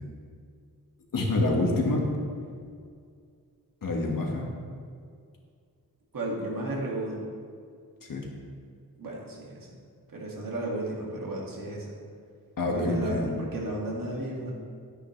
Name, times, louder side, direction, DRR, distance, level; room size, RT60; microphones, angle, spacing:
voice 1, 1.1-2.1 3.8-4.4 8.0-8.3 12.6-13.3, left 2 dB, 60° left, 0 dB, 1.8 m, -26 dB
voice 2, 6.1-7.2 9.0-9.7 10.1-11.9 12.6-14.5, right 1 dB, 60° right, -3 dB, 2.3 m, -33 dB
12.0 x 10.0 x 3.3 m, 2.2 s
wide cardioid pair, 150°, 37 cm